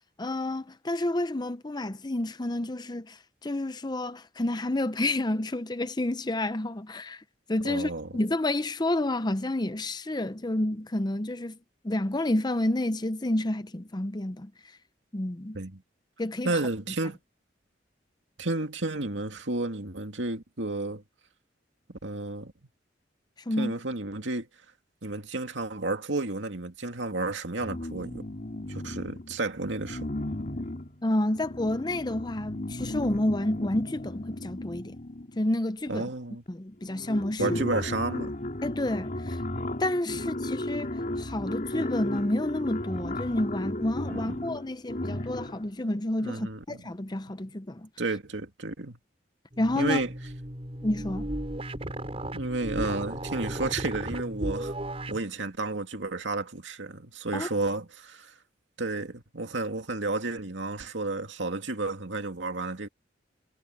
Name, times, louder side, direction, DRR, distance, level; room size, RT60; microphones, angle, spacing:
voice 1, 0.2-7.2 7.5-11.6 11.8-14.5 15.1-15.6 16.2-16.6 23.5-23.7 31.0-35.0 35.4-36.1 36.5-37.6 38.6-39.4 39.8-47.9 49.6-50.0 50.8-51.3 57.3-57.5, left 1 dB, 25° left, 0.7 m, -29 dB
voice 2, 7.6-8.1 15.5-15.8 16.4-17.2 18.4-21.0 21.9-22.5 23.6-24.5 25.0-28.3 28.7-30.1 35.9-36.4 37.4-38.4 44.1-44.5 46.2-46.8 48.0-49.0 49.7-50.1 52.3-54.7 55.1-58.3 58.8-62.9, right 2 dB, 90° right, 2.3 m, -32 dB
sound 1, 27.6-29.4 29.8-35.5 36.5-36.6 36.8-45.7, left 1 dB, 45° left, 3.1 m, -35 dB
sound 2, 49.5-55.2, right 1 dB, 35° right, 5.3 m, -35 dB
head